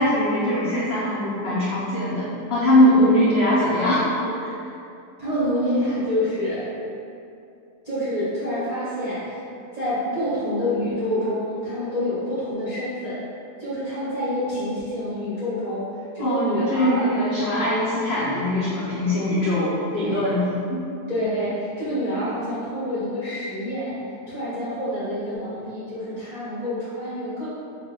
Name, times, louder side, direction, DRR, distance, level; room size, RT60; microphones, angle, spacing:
voice 1, 0.0-4.5 16.2-20.4 20.7-20.8, left 1 dB, 75° left, -7 dB, 0.5 m, -21 dB
voice 2, 5.2-6.7 7.8-9.4 9.7-13.3 13.6-17.1 19.9-20.4 21.1-27.5, equal, 35° right, -12 dB, 0.7 m, -27 dB
3.9 x 2.1 x 3.7 m, 2.6 s
omnidirectional pair, 1.7 m